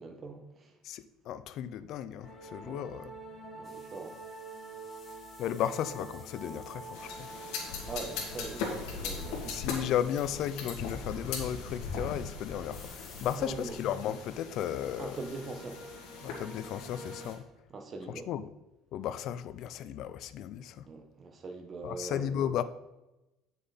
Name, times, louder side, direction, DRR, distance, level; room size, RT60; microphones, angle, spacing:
voice 1, 0.0-0.8 2.6-3.0 3.5-4.2 7.9-9.6 13.3-13.8 15.0-15.8 17.7-18.3 20.9-22.3, right 3 dB, 25° right, 1.1 m, -42 dB
voice 2, 0.8-3.1 5.4-7.3 9.5-15.2 16.2-17.4 18.3-18.5 18.9-20.9 21.8-22.6, left 10 dB, 50° left, 0.5 m, -34 dB
sound 1, 2.2-17.3, right 3 dB, ahead, 1.9 m, -49 dB
sound 2, 3.6-11.0 12.7-13.4, left 4 dB, 20° left, 1.2 m, -57 dB
sound 3, 6.9-17.3, left 4 dB, 75° left, 2.3 m, -40 dB
9.0 x 6.7 x 4.1 m
cardioid pair, 155°, 0 cm